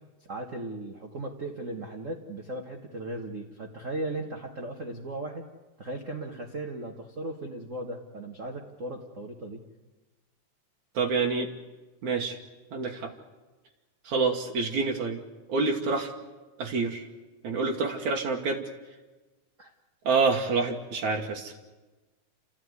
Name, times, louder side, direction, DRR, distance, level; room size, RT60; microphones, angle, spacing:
voice 1, 0.3-5.4 5.8-9.6 19.6-19.7, right 2 dB, 40° right, 2 dB, 1.1 m, -37 dB
voice 2, 11.0-11.5 12.0-12.4 12.7-13.1 14.1-15.2 15.5-16.1 16.6-17.1 17.4-18.6 20.1-21.5, right 4 dB, 75° right, 1 dB, 2.8 m, -27 dB
29.0 x 13.5 x 9.6 m, 1.2 s
omnidirectional pair, 3.5 m